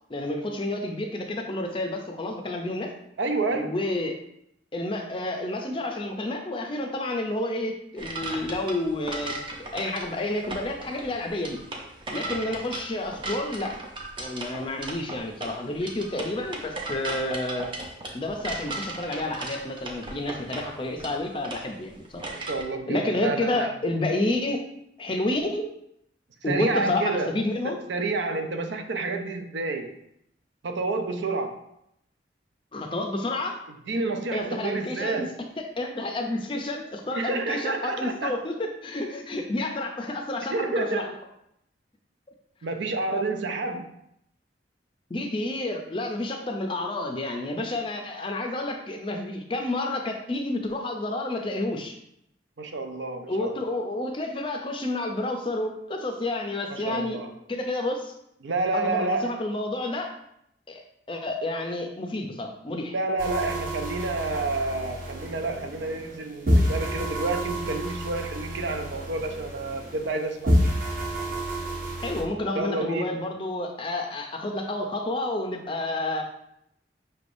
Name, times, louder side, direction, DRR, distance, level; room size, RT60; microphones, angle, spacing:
voice 1, 0.1-2.9 3.5-4.1 4.7-11.6 12.1-13.8 14.2-17.7 18.1-22.3 22.9-24.6 25.0-25.7 26.4-27.8 32.7-33.6 34.3-35.3 35.6-41.1 45.1-52.0 53.3-57.2 57.5-58.1 58.7-60.1 60.7-62.9 72.0-76.2, left 2 dB, 25° left, 3 dB, 0.5 m, -30 dB
voice 2, 3.2-3.8 22.3-23.7 26.5-27.3 27.9-30.0 30.6-31.6 33.9-35.3 37.1-38.3 40.4-41.1 42.6-43.9 52.6-53.5 56.7-57.3 58.4-59.4 62.9-70.7 72.5-73.2, right 3 dB, 75° right, 5 dB, 0.5 m, -29 dB
sound 1, 8.0-22.6, right 2 dB, 25° right, 0.5 m, -37 dB
sound 2, 63.2-66.2 66.5-70.2 70.5-72.2, equal, 45° right, 0.9 m, -28 dB
5.6 x 3.3 x 2.6 m, 0.76 s
head